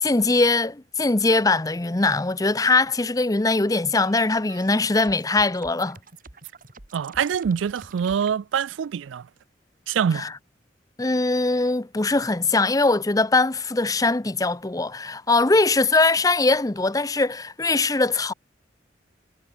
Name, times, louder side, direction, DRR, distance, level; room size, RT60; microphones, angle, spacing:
voice 1, 0.0-6.0 10.1-10.3 11.0-18.3, left 3 dB, 20° left, 0.7 m, -21 dB
sound 1, 4.0-8.3, right 4 dB, 45° right, 2.4 m, -47 dB
voice 2, 6.9-9.3 9.9-10.3, right 7 dB, 90° right, 0.4 m, -25 dB
head